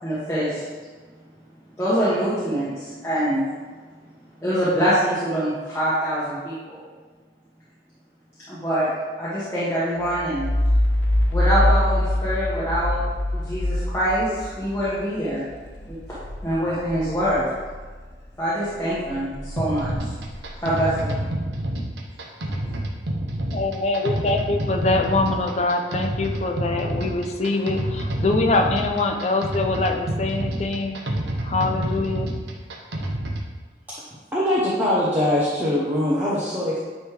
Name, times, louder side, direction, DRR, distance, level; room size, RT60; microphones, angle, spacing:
voice 1, 0.0-0.6 1.8-3.4 4.4-6.8 8.5-8.9 9.2-10.4 11.3-13.0 13.3-15.4 15.8-16.0 16.4-17.5 18.4-20.1 20.6-21.1, equal, 15° left, -12 dB, 1.5 m, -24 dB
sound 1, 10.0-18.2 18.6-21.2, left 1 dB, 90° left, 0.7 m, -25 dB
sound 2, 19.6-33.5, right 1 dB, 80° right, 0.8 m, -28 dB
voice 2, 23.5-31.0 31.4-32.3, left 3 dB, 40° left, 3 dB, 0.6 m, -24 dB
voice 3, 34.3-36.8, left 1 dB, 10° right, -8 dB, 0.9 m, -22 dB
9.5 x 3.3 x 3.4 m, 1.4 s
head